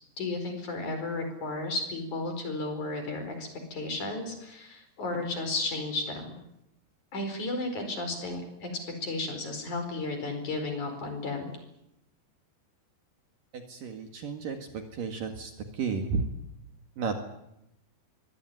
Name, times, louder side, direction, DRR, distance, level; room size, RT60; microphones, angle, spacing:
voice 1, 0.2-6.4 7.1-8.7 9.0-11.5, left 2 dB, 45° left, 6 dB, 5.8 m, -33 dB
voice 2, 13.8-14.6 15.0-15.5 15.8-16.2 17.0-17.2, right 5 dB, 55° right, 5 dB, 3.3 m, -31 dB
24.0 x 18.5 x 9.6 m, 0.83 s
omnidirectional pair, 5.0 m